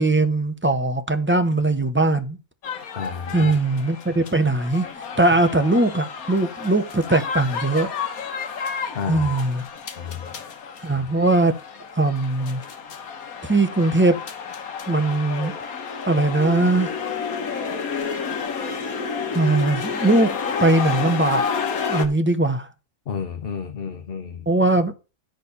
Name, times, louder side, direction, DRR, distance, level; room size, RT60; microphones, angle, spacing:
voice 1, 0.0-2.4 3.3-4.9 5.2-7.9 9.1-9.6 10.8-11.5 11.9-12.6 13.4-14.2 14.9-15.5 16.1-16.9 19.3-20.3 20.6-21.4 21.9-22.7 24.5-24.9, right 2 dB, 10° right, 0.6 m, -20 dB
sound 1, 2.6-22.1, left 6 dB, 85° left, 1.6 m, -30 dB
voice 2, 3.0-3.5 8.9-9.3 10.0-10.2 23.1-24.5, left 6 dB, 45° left, 1.1 m, -31 dB
10.5 x 4.4 x 6.7 m
omnidirectional pair, 1.5 m